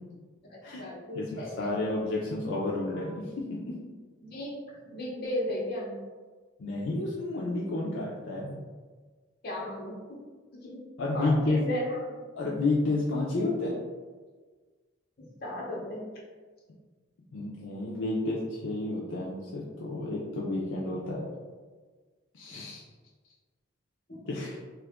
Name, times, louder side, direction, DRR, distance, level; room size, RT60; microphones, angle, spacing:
voice 1, 0.5-1.7 2.9-3.1 4.2-6.0 9.4-10.2 10.6-10.8 11.1-12.2 15.2-16.1 24.1-24.2, left 1 dB, 50° left, -3 dB, 0.8 m, -35 dB
voice 2, 1.1-3.8 6.6-8.6 11.0-11.6 12.4-13.7 17.3-21.3 22.3-22.8 24.3-24.6, left 2 dB, 70° left, -5 dB, 0.5 m, -31 dB
2.8 x 2.4 x 3.4 m, 1.4 s
head